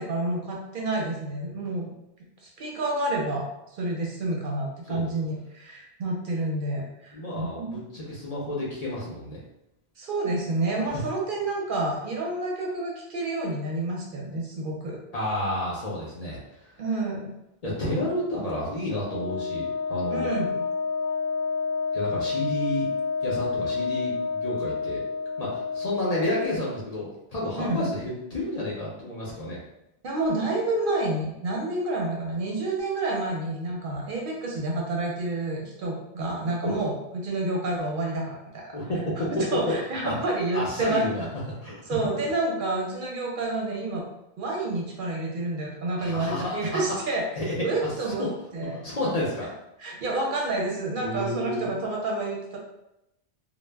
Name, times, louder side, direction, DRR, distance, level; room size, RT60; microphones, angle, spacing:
voice 1, 0.0-1.9 2.4-3.5 3.7-7.9 10.0-15.0 16.8-17.3 18.0-18.1 20.1-20.6 27.6-27.9 30.0-38.8 39.3-41.3 41.9-44.0 44.4-47.2 47.6-48.3 48.5-48.8 49.8-52.6, right 2 dB, 60° right, -2 dB, 0.6 m, -29 dB
voice 2, 7.1-9.4 10.9-11.0 15.1-16.7 17.6-20.3 21.9-22.9 23.2-25.0 25.4-29.6 33.9-34.0 36.6-36.8 38.7-39.6 40.0-40.2 40.5-41.3 41.6-42.3 46.0-46.8 47.4-47.6 47.8-47.9 48.2-48.3 48.7-49.5 51.0-51.7, left 1 dB, 45° left, -6 dB, 0.6 m, -31 dB
Wind instrument woodwind instrument, 18.9-26.7, left 4 dB, 80° left, 0.9 m, -29 dB
2.0 x 2.0 x 3.3 m, 0.86 s
omnidirectional pair, 1.0 m